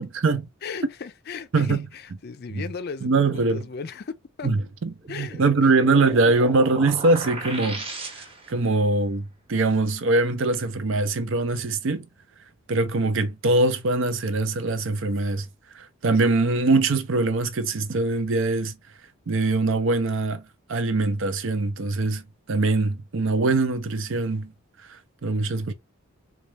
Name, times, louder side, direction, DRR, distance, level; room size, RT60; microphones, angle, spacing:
voice 1, 0.0-0.4 1.5-1.8 3.0-3.6 4.4-7.8 8.5-12.0 12.7-15.5 15.7-18.7 19.3-20.4 20.7-22.2 22.5-24.5 24.9-25.7, right 3 dB, 60° right, 0.6 m, -22 dB
voice 2, 0.6-4.5 5.1-5.7, left 5 dB, 45° left, 0.4 m, -36 dB
sound 1, 5.0-8.6, right 2 dB, 25° right, 0.9 m, -35 dB
4.1 x 2.3 x 3.2 m
head